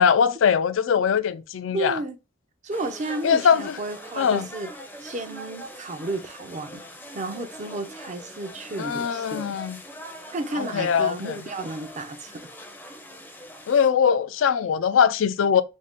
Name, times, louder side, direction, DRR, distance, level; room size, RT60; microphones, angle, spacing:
voice 1, 0.0-2.0 3.2-3.7 4.2-4.5 8.8-9.8 10.6-11.4 13.7-15.6, left 7 dB, 80° left, 0.4 m, -21 dB
voice 2, 1.7-2.2 2.6-4.7 5.0-6.8 7.1-9.5 10.3-12.5, right 2 dB, 40° right, 0.5 m, -32 dB
sound 1, 2.7-13.9, equal, 10° left, 0.5 m, -42 dB
3.2 x 2.6 x 3.5 m
head